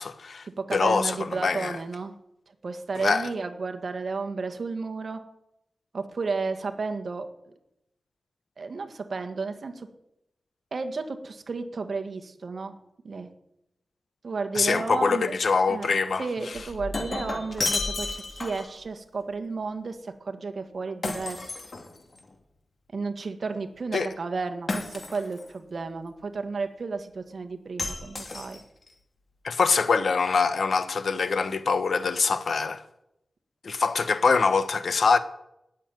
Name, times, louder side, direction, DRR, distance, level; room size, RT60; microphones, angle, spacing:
voice 1, 0.0-1.8 3.0-3.3 14.5-16.3 23.9-24.1 29.4-32.8 33.6-35.2, left 4 dB, 70° left, 1.1 m, -24 dB
voice 2, 0.6-2.1 2.6-5.2 5.9-7.3 8.6-9.9 10.7-12.8 13.0-13.3 14.2-15.3 15.7-21.6 22.9-28.6, right 4 dB, 55° right, 1.7 m, -33 dB
Shatter, 16.5-18.8 21.0-22.3 24.7-25.5 27.8-28.9, left 3 dB, 50° left, 2.3 m, -32 dB
18.0 x 7.2 x 9.2 m
wide cardioid pair, 85°, 0 cm